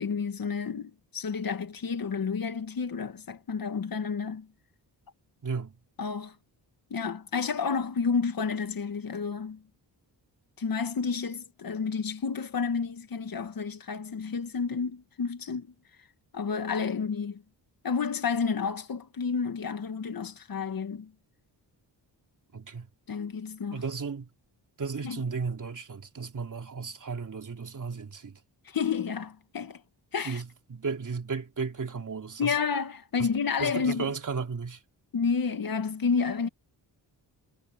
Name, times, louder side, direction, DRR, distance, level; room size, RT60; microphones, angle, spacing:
voice 1, 0.0-4.5 6.0-6.3 6.9-9.6 10.6-15.7 16.3-17.4 17.8-21.1 23.1-23.8 25.0-25.3 28.7-29.8 30.1-30.4 32.4-34.1 35.1-36.5, left 5 dB, 50° left, 1.9 m, -30 dB
voice 2, 5.4-5.8 22.5-22.9 23.7-24.3 24.8-28.4 30.2-32.6 33.2-33.3 33.6-34.8, right 5 dB, 45° right, 3.3 m, -34 dB
wide cardioid pair, 130°, 43 cm